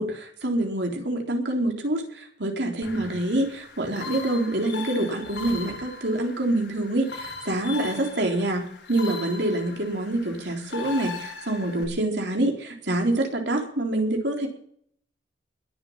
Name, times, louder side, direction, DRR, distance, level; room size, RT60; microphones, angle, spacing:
voice 1, 0.0-14.5, right 1 dB, 75° right, 2 dB, 3.8 m, -26 dB
sound 1, 2.8-11.8, left 4 dB, 75° left, 3.9 m, -39 dB
21.0 x 7.2 x 7.4 m, 0.63 s
head